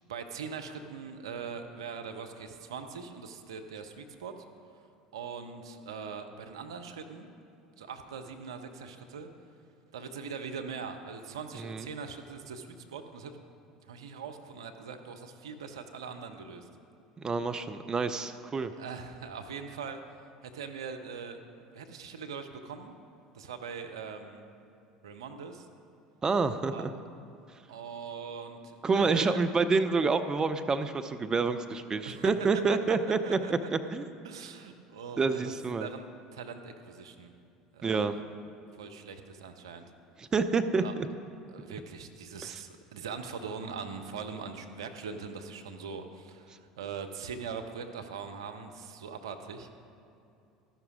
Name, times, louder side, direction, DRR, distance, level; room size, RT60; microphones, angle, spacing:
voice 1, 0.1-4.3 5.1-7.3 7.8-9.3 9.9-13.4 13.9-16.7 18.8-20.0 20.5-22.9 23.3-24.5 25.0-25.7 26.7-26.9 27.7-29.4 32.0-32.3 33.2-33.9 34.2-35.5 35.8-37.3 37.7-38.2 38.8-39.9 40.8-40.9 41.5-49.7, right 5 dB, 75° right, 6 dB, 0.7 m, -41 dB
voice 2, 17.2-18.7 26.2-26.9 28.8-34.1 35.2-35.9 37.8-38.2 40.2-41.1 42.5-42.6, right 4 dB, 25° right, 10 dB, 0.5 m, -28 dB
14.0 x 5.9 x 4.9 m, 2.7 s
figure-of-eight pair, 70°, 3 cm